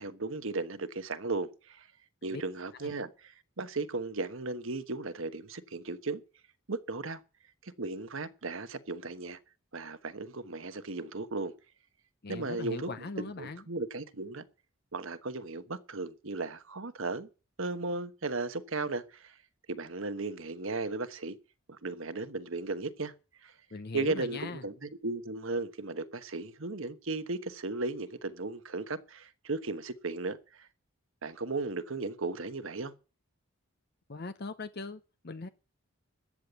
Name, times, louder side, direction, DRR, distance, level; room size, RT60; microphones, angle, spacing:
voice 1, 0.0-1.9 2.2-6.2 6.7-7.2 7.6-9.4 9.7-11.5 12.3-12.9 13.4-14.4 14.9-17.3 17.6-19.4 19.7-21.4 21.7-23.1 23.4-23.5 23.9-30.7 31.2-32.9, right 3 dB, 65° right, 1.2 m, -36 dB
voice 2, 12.2-13.6 23.7-24.7 34.1-35.5, left 3 dB, 45° left, 0.7 m, -40 dB
13.5 x 8.6 x 8.1 m
head